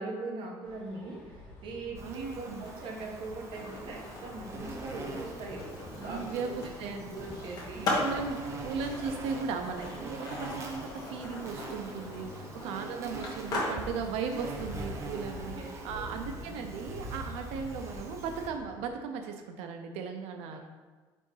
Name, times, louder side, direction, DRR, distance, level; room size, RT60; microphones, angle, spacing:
voice 1, 0.0-5.8 6.0-6.5 6.8-7.9 8.3-8.7 15.5-15.6 15.9-16.5 20.5-20.6, right 2 dB, 55° right, 0 dB, 1.3 m, -41 dB
sound 1, 0.6-18.9, left 1 dB, 15° left, 1.6 m, -47 dB
Insect, 2.0-18.5, right 3 dB, 30° right, 0.8 m, -44 dB
voice 2, 2.0-2.7 6.0-7.2 7.8-20.6, right 5 dB, 80° right, 5 dB, 0.5 m, -37 dB
Skateboard, 2.6-18.4, left 2 dB, 40° left, 1.5 m, -40 dB
5.0 x 3.8 x 5.5 m, 1.3 s
cardioid pair, 145°, 10 cm